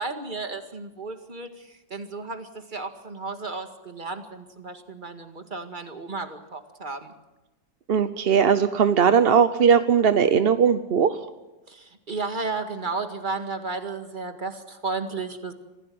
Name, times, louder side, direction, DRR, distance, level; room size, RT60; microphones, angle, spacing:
voice 1, 0.0-7.1 11.7-15.5, right 3 dB, 25° right, 7 dB, 2.0 m, -33 dB
voice 2, 7.9-11.2, right 7 dB, 50° right, 11 dB, 0.7 m, -19 dB
26.0 x 16.0 x 7.8 m, 1.1 s
omnidirectional pair, 2.0 m